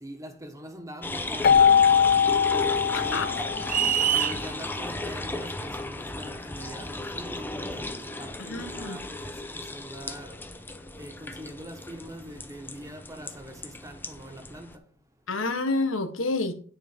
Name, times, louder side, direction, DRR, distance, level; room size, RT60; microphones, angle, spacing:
voice 1, 0.0-2.0 2.5-3.4 4.1-10.4 11.0-14.8, equal, 15° right, 1.4 m, -43 dB
sound 1, 1.0-14.8, left 2 dB, 10° left, 0.8 m, -35 dB
Keyboard (musical), 1.4-4.1, left 7 dB, 50° left, 0.5 m, -21 dB
voice 2, 2.9-3.3 8.5-9.0 15.3-16.5, left 3 dB, 85° left, 1.5 m, -28 dB
sound 2, 3.7-4.4, right 9 dB, 45° right, 0.5 m, -24 dB
9.9 x 5.5 x 5.5 m
head